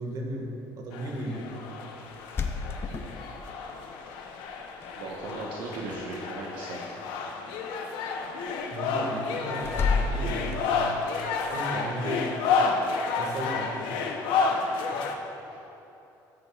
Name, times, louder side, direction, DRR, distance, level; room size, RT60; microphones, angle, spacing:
voice 1, 0.0-1.5 8.7-10.9 11.5-12.6 13.2-14.0 14.9-15.0, right 1 dB, 55° right, 0 dB, 1.7 m, -35 dB
sound 1, 0.9-15.1, left 4 dB, 85° left, 0.8 m, -31 dB
sound 2, 2.1-3.7 4.8-5.4 5.6-6.2 9.6-11.0, left 4 dB, 30° left, 0.7 m, -30 dB
voice 2, 4.9-7.0 15.4-15.6, right 2 dB, 75° right, -3 dB, 1.1 m, -37 dB
13.0 x 9.5 x 2.4 m, 2.9 s
cardioid pair, 120°, 8 cm